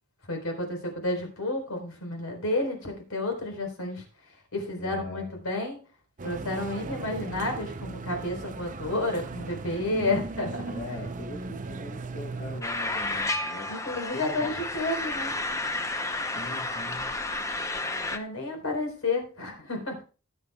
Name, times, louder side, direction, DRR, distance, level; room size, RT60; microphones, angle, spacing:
voice 1, 0.3-4.0 4.5-5.8 6.2-10.7 13.7-15.3 18.1-20.0, left 2 dB, 80° left, 3 dB, 4.3 m, -31 dB
voice 2, 4.8-5.4 10.7-13.7 14.1-14.6 16.3-17.1, left 2 dB, 45° left, 0 dB, 1.4 m, -41 dB
sound 1, 6.2-12.6, right 3 dB, 35° right, 0.6 m, -37 dB
sound 2, 12.6-18.2, left 2 dB, 15° left, 0.8 m, -31 dB
19.5 x 8.3 x 2.3 m, 0.36 s
head